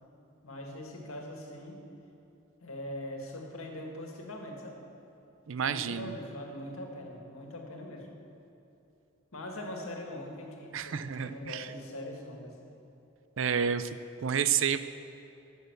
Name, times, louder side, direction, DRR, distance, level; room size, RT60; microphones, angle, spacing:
voice 1, 0.4-1.8 2.6-4.8 5.6-8.1 9.3-12.7, left 1 dB, 85° left, 1 dB, 1.9 m, -42 dB
voice 2, 5.5-6.2 10.7-11.7 13.4-13.9 14.2-14.8, right 7 dB, 70° right, 12 dB, 0.5 m, -30 dB
12.0 x 6.7 x 7.8 m, 2.9 s
head